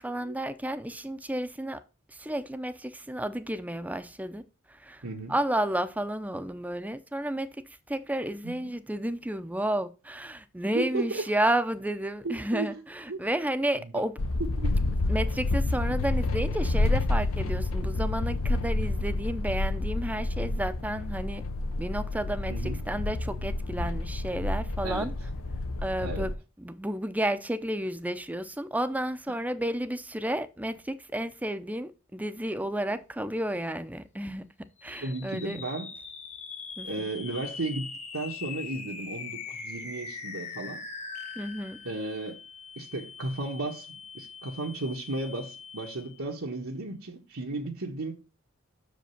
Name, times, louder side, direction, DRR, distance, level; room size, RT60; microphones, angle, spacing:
voice 1, 0.0-1.8 2.1-4.4 4.7-5.0 5.3-14.2 15.1-21.4 21.8-25.1 25.8-26.3 26.6-34.5 34.8-35.6 36.8-37.1 41.4-41.8, right 1 dB, 5° right, 0.6 m, -31 dB
voice 2, 5.0-5.3 8.4-8.5 10.7-11.3 12.2-12.7 13.1-13.2 13.8-13.9 14.4-14.7 22.5-22.8 24.8-25.1 26.0-26.3 35.0-35.9 36.8-40.8 41.8-42.4 42.8-48.1, right 2 dB, 80° right, 1.4 m, -34 dB
sound 1, 14.2-26.3, left 2 dB, 75° left, 0.7 m, -29 dB
sound 2, 34.8-46.3, left 5 dB, 35° left, 1.0 m, -42 dB
6.6 x 5.1 x 6.6 m
head